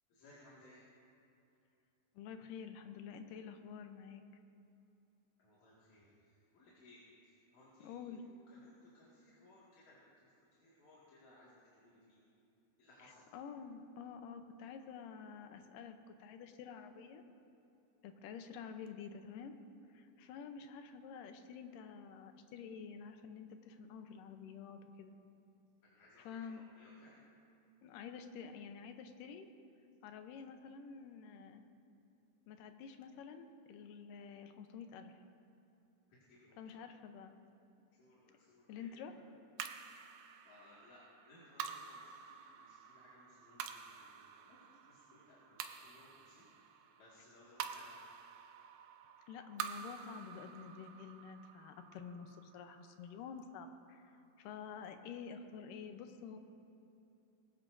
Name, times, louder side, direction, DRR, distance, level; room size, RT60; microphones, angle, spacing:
voice 1, 0.1-0.8 5.4-8.2 8.5-10.0 10.6-12.2 12.8-13.3 26.0-27.2 36.3-36.8 37.9-39.0 40.4-46.5 47.0-47.9, left 1 dB, 60° left, -8 dB, 3.4 m, -63 dB
voice 2, 2.2-4.2 7.8-8.2 13.0-17.2 18.0-19.6 19.9-25.2 26.2-26.6 27.8-29.5 30.0-31.6 32.5-35.2 36.6-37.4 38.7-39.1 49.3-56.4, left 6 dB, 85° left, 7 dB, 2.5 m, -49 dB
sound 1, 39.6-54.1, right 8 dB, 85° right, 2.3 m, -49 dB
21.0 x 17.0 x 2.7 m, 2.7 s
omnidirectional pair, 3.8 m